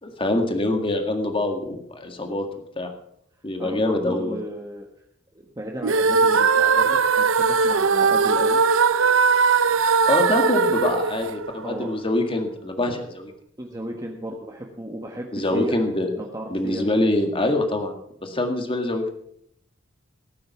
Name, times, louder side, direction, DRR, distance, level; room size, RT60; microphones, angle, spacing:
voice 1, 0.0-2.5 2.8-2.9 3.4-4.4 10.1-13.3 15.3-16.1 16.5-17.9 18.2-19.1, left 1 dB, 25° left, 5 dB, 1.9 m, -24 dB
voice 2, 3.6-4.9 5.6-8.6 11.6-11.9 13.6-15.8 16.2-16.8, right 1 dB, 20° right, 0 dB, 1.4 m, -34 dB
sound 1, 5.8-12.0, right 5 dB, 80° right, 0.7 m, -19 dB
17.5 x 9.3 x 5.8 m, 0.69 s
head